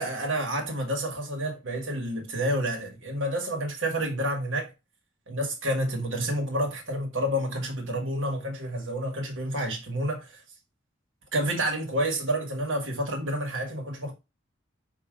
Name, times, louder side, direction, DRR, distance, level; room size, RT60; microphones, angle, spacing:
voice 1, 0.0-4.7 5.3-10.3 11.3-14.1, right 1 dB, 75° right, 1.5 m, -29 dB
4.8 x 2.8 x 3.8 m
head